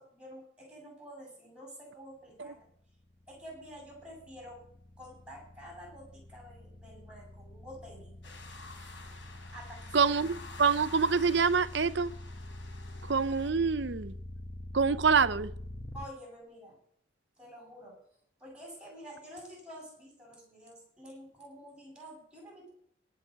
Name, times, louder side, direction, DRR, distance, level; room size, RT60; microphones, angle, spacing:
voice 1, 0.0-2.7 3.3-4.6 5.0-8.2 9.5-10.1 15.9-16.8 17.4-18.0 18.4-22.7, equal, 5° right, 7.7 m, -49 dB
sound 1, 2.8-16.1, left 1 dB, 20° left, 1.2 m, -45 dB
sound 2, 8.2-13.5, left 3 dB, 80° left, 3.7 m, -49 dB
voice 2, 9.9-12.1 13.1-14.1 14.7-15.5, right 5 dB, 65° right, 0.7 m, -26 dB
18.0 x 6.1 x 8.0 m
head